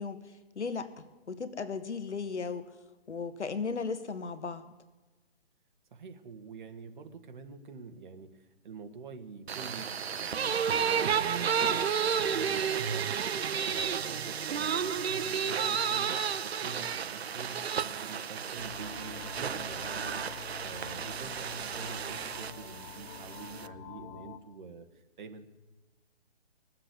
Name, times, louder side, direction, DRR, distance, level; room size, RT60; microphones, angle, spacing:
voice 1, 0.0-2.7 3.1-4.7, left 5 dB, 85° left, 11 dB, 1.5 m, -36 dB
voice 2, 5.9-25.5, right 4 dB, 45° right, 6 dB, 1.5 m, -46 dB
sound 1, 9.5-23.7, right 7 dB, 65° right, 0.8 m, -32 dB
sound 2, 18.6-24.4, left 7 dB, 30° left, 0.7 m, -47 dB
20.5 x 7.6 x 8.1 m, 1.2 s
hypercardioid pair, 160°, 34 cm